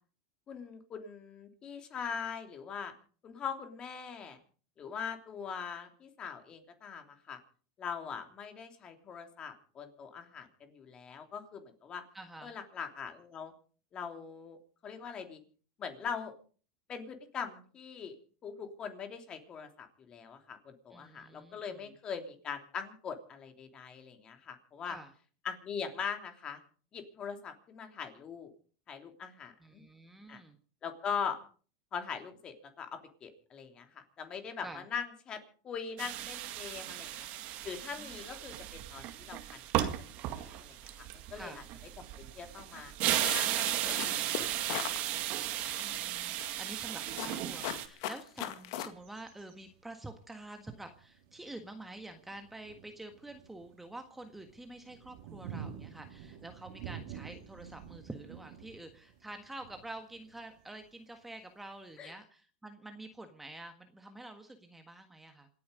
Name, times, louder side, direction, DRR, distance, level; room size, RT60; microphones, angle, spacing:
voice 1, 0.5-2.9 3.2-4.4 4.8-7.4 7.8-12.0 12.4-13.5 13.9-14.6 14.8-15.4 15.8-16.3 16.9-18.1 18.4-25.0 25.4-26.6 26.9-28.5 28.9-29.8 30.3-30.4 30.8-31.4 31.9-37.3 37.6-39.9 40.4-41.6 42.0-42.9 43.3-43.8 44.3-44.9 62.0-62.1, left 6 dB, 30° left, 6 dB, 3.2 m, -41 dB
voice 2, 12.1-12.5 20.9-21.9 24.8-25.1 29.6-30.6 34.6-34.8 37.9-38.2 41.3-41.6 45.8-65.5, right 2 dB, 5° right, 6 dB, 1.6 m, -48 dB
sound 1, 36.0-47.9, right 13 dB, 50° right, 2.1 m, -35 dB
sound 2, 43.2-45.0 45.5-46.0 46.4-48.9, left 12 dB, 65° left, 2.1 m, -39 dB
sound 3, 48.1-48.2 48.4-61.2 61.7-61.8, right 8 dB, 65° right, 2.7 m, -50 dB
27.0 x 9.6 x 5.2 m, 0.42 s
supercardioid pair, 125°, 3 cm